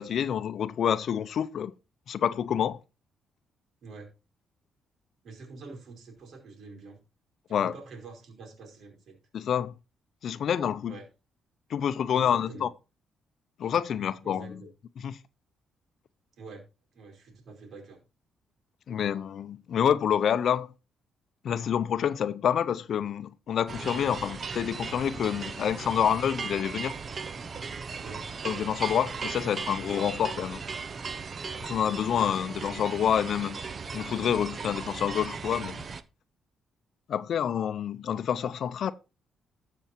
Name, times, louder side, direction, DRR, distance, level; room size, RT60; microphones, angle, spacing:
voice 1, 0.0-1.7 2.1-2.8 7.5-7.7 9.3-9.7 10.2-10.9 11.7-12.7 13.6-14.6 15.0-15.2 18.9-20.7 21.4-26.9 28.4-30.6 31.6-33.6 33.9-35.8 37.1-38.9, left 9 dB, 60° left, 0.6 m, -28 dB
voice 2, 5.2-7.0 7.5-9.2 10.9-11.0 12.1-12.7 14.0-14.7 16.4-16.6 16.9-18.0 28.0-28.2, right 4 dB, 65° right, 4.8 m, -46 dB
sound 1, 23.7-36.0, right 5 dB, 40° right, 0.9 m, -37 dB
13.0 x 7.0 x 4.5 m
cardioid pair, 90°, 0 cm